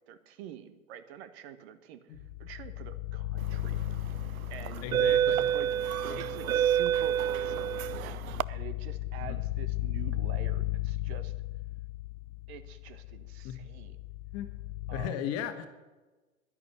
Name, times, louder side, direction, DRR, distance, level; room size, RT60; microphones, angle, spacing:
voice 1, 0.1-2.0 2.4-3.7 4.5-5.2 5.5-8.2 8.5-11.3 12.5-14.0 14.9-15.2, right 9 dB, 50° right, 11 dB, 1.3 m, -46 dB
sound 1, 2.2-15.1, left 14 dB, 70° left, 0.7 m, -36 dB
sound 2, 3.6-3.9 4.6-8.4, right 10 dB, 80° right, 0.5 m, -28 dB
voice 2, 4.8-5.6 6.1-6.2 9.2-9.4 13.4-13.5 14.3-14.5 14.9-15.7, left 9 dB, 35° left, 8 dB, 1.6 m, -36 dB
11.0 x 11.0 x 8.1 m, 1.2 s
figure-of-eight pair, 100°, 42 cm